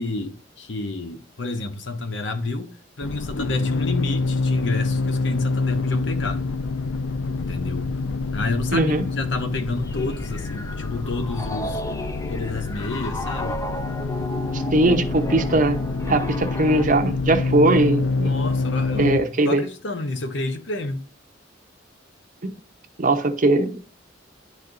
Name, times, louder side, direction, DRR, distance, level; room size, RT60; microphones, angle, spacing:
voice 1, 0.0-2.7 3.0-6.4 7.4-7.9 8.3-11.8 12.3-13.6 18.1-21.0, left 2 dB, 65° left, 0.8 m, -29 dB
sound 1, 3.0-19.2, left 3 dB, 90° left, 0.5 m, -26 dB
voice 2, 8.7-9.0 14.5-15.8 16.0-18.3 18.9-19.6 22.4-22.5 23.0-23.8, right 2 dB, 45° right, 0.7 m, -20 dB
Piano, 9.9-16.9, left 1 dB, 15° left, 0.4 m, -33 dB
10.5 x 4.2 x 2.5 m
head